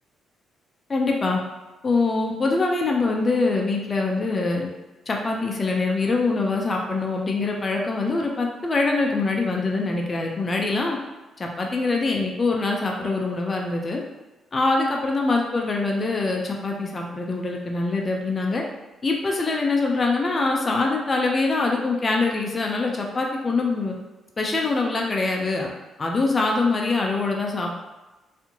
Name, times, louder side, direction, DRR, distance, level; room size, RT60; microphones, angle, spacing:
voice 1, 0.9-1.4 1.8-4.7 5.1-11.0 11.4-14.0 14.5-18.6 19.0-23.9 24.4-25.7 26.0-27.8, left 3 dB, 30° left, 0 dB, 0.5 m, -24 dB
4.1 x 2.7 x 2.8 m, 1.1 s
cardioid pair, 90°, 0 cm